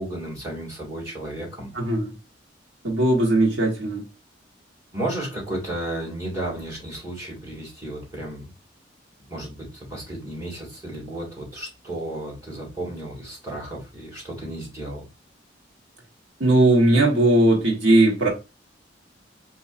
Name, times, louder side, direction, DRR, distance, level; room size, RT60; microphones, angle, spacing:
voice 1, 0.0-1.7 4.9-8.5 9.3-15.0, right 1 dB, 20° right, 1.9 m, -33 dB
voice 2, 1.7-2.1 2.8-4.0 16.4-18.3, right 1 dB, 80° right, 1.4 m, -18 dB
4.1 x 2.9 x 2.5 m
head